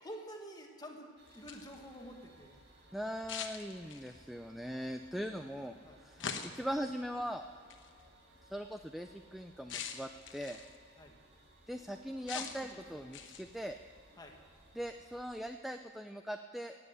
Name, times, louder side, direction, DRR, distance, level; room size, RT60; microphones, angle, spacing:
voice 1, 0.0-2.5 5.1-5.6 5.8-6.4 11.0-11.1 12.3-12.5 12.9-13.4 14.2-14.3, equal, 20° left, 2 dB, 1.5 m, -49 dB
sound 1, 1.2-15.4, right 1 dB, 50° right, 2.0 m, -62 dB
sound 2, 1.3-1.8 3.3-4.2 6.2-6.8 7.7-7.9 9.7-10.8 12.3-12.7 13.1-13.6, left 7 dB, 60° left, 1.0 m, -42 dB
voice 2, 2.9-6.2 6.5-7.4 8.5-10.6 11.7-13.8 14.7-16.8, equal, ahead, 6 dB, 0.3 m, -40 dB
18.0 x 7.8 x 8.0 m, 2.2 s
head